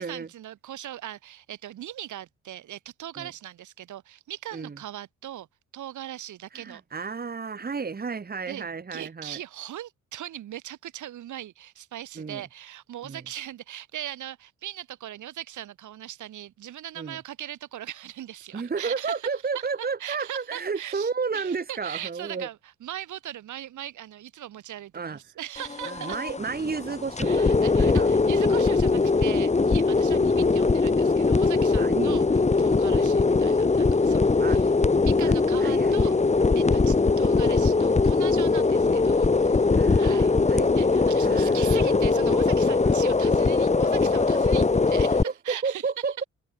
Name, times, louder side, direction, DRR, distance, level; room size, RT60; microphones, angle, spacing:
voice 1, 0.0-5.5 5.7-6.8 8.5-19.3 19.5-19.6 20.0-26.2 27.2-32.2 32.6-34.7 35.0-36.1 36.5-40.3 40.7-45.9, right 12 dB, 75° right, 5.9 m, -39 dB
voice 2, 6.5-9.4 12.2-12.4 13.0-13.2 17.0-17.2 18.5-22.5 24.9-25.2 25.8-28.1 31.8-32.2 32.9-33.1 34.4-34.6 35.2-35.3 35.6-36.2 36.7-36.9 39.8-40.8 41.2-41.8 42.8-43.0 45.2-46.2, right 5 dB, 30° right, 2.9 m, -32 dB
sound 1, 25.6-45.2, left 3 dB, 20° left, 2.4 m, -21 dB
cardioid pair, 90°, 30 cm